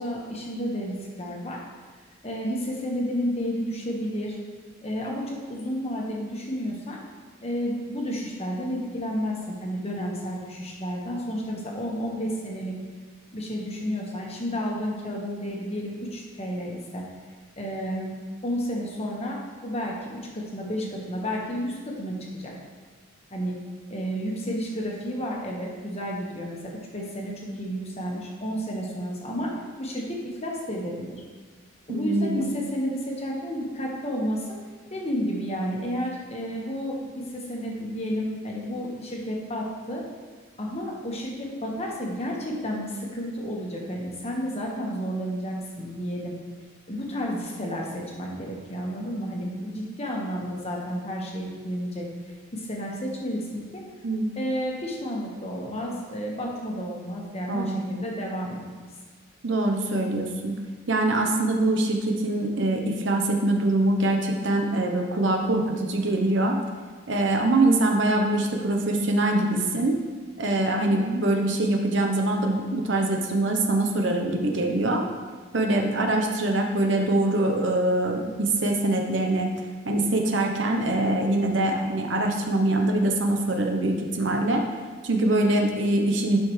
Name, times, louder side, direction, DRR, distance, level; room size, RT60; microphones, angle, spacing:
voice 1, 0.0-1.6 2.2-4.4 4.8-7.0 7.4-12.7 13.3-17.0 17.6-18.1 18.4-22.5 23.3-23.6 23.9-29.5 29.8-31.2 31.9-34.6 34.9-40.0 40.6-46.3 46.9-52.1 52.5-53.8 54.4-58.8, equal, 30° left, -2 dB, 1.3 m, -31 dB
voice 2, 31.9-32.5 54.0-54.3 57.5-57.9 59.4-60.6 60.9-66.6 67.1-70.0 70.4-75.0 75.5-79.5 79.8-84.6 85.0-86.4, right 2 dB, 60° right, 2 dB, 0.8 m, -23 dB
11.0 x 5.8 x 3.2 m, 1.5 s
head